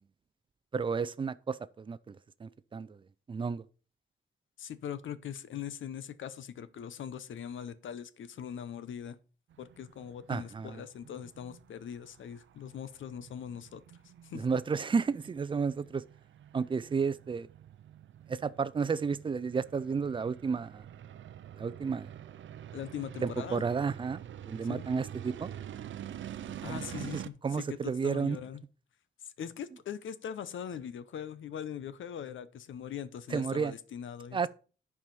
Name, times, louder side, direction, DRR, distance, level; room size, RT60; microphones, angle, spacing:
voice 1, 0.7-3.0 3.3-3.6 10.3-10.8 14.3-16.0 16.5-17.5 18.3-20.8 21.6-22.1 23.2-25.5 26.5-28.4 33.3-33.7 34.3-34.5, right 5 dB, 25° right, 0.4 m, -32 dB
voice 2, 4.6-9.2 9.6-13.8 14.2-14.5 22.7-23.6 24.7-24.8 26.6-27.8 28.0-28.6 29.4-34.5, left 9 dB, 90° left, 0.8 m, -41 dB
sound 1, 9.5-27.3, right 10 dB, 85° right, 0.6 m, -47 dB
10.5 x 4.9 x 5.4 m
wide cardioid pair, 145°, 19 cm